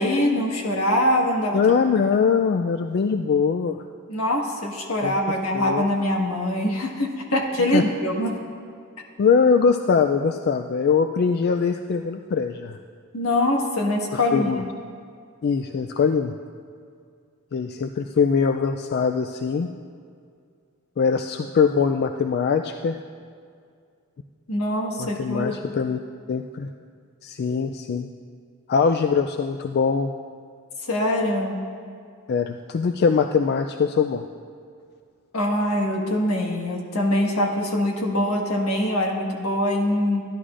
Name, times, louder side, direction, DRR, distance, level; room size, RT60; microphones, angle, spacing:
voice 1, 0.0-1.6 4.1-8.4 13.1-14.6 24.5-25.6 30.8-31.6 35.3-40.2, left 1 dB, 80° left, 0 dB, 1.6 m, -23 dB
voice 2, 1.5-3.8 5.0-5.1 5.5-5.8 7.7-7.8 9.2-12.8 14.1-14.6 15.4-16.3 17.5-19.7 21.0-23.0 25.0-26.0 26.3-26.7 27.2-28.1 28.7-30.1 32.3-34.3, left 5 dB, 50° left, 6 dB, 0.3 m, -22 dB
15.0 x 11.0 x 2.5 m, 2.2 s
head